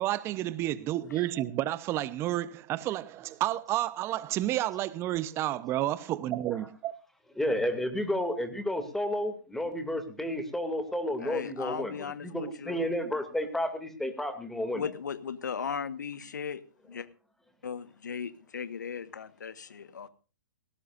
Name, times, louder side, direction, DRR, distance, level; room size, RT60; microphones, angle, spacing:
voice 1, 0.0-6.9, right 14 dB, 25° right, 0.8 m, -30 dB
voice 2, 7.4-14.8, left 1 dB, 5° left, 2.6 m, -31 dB
voice 3, 11.2-12.9 14.7-16.6 16.9-17.1 17.6-20.1, left 6 dB, 80° left, 1.5 m, -37 dB
19.0 x 17.5 x 2.6 m
hypercardioid pair, 130°, 10 cm